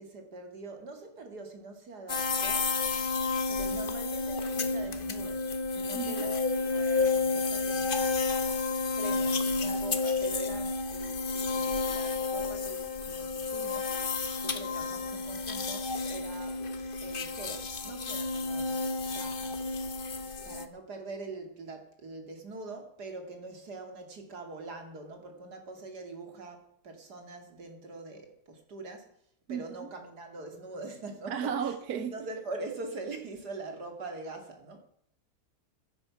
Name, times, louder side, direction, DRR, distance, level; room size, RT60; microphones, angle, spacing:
voice 1, 0.0-2.8 3.5-6.4 6.7-8.3 9.0-16.6 17.0-18.7 19.1-19.6 20.4-29.1 29.5-34.8, right 3 dB, 90° right, 3.0 m, -44 dB
sound 1, 2.1-20.7, left 4 dB, 40° left, 1.1 m, -31 dB
voice 2, 5.9-6.3 29.5-29.9 31.3-32.1, right 8 dB, 75° right, 1.4 m, -34 dB
16.0 x 10.5 x 5.9 m
omnidirectional pair, 1.7 m